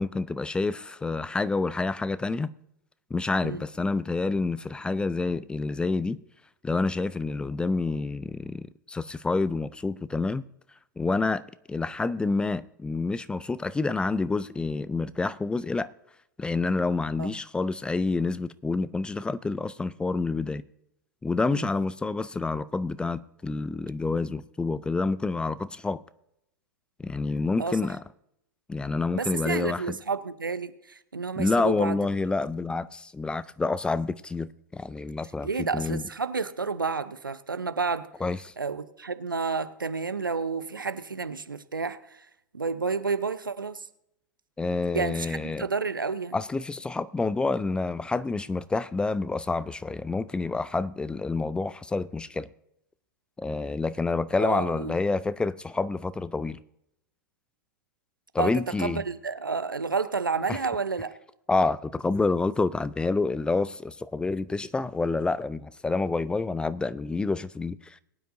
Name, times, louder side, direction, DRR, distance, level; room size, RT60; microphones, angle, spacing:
voice 1, 0.0-2.5 3.1-6.2 6.6-10.4 11.0-11.4 11.7-15.9 16.4-20.6 21.2-26.0 27.0-28.0 28.7-29.8 31.4-36.0 38.2-38.5 44.6-45.7 46.3-52.5 53.4-56.6 58.3-59.0 60.5-60.6 61.5-68.0, left 3 dB, 10° left, 0.3 m, -28 dB
voice 2, 29.1-32.0 35.4-38.1 38.6-42.3 42.5-43.9 44.9-46.4 54.4-55.0 58.4-61.1, right 4 dB, 90° right, 0.7 m, -30 dB
22.0 x 9.1 x 2.6 m
figure-of-eight pair, 100°, 11 cm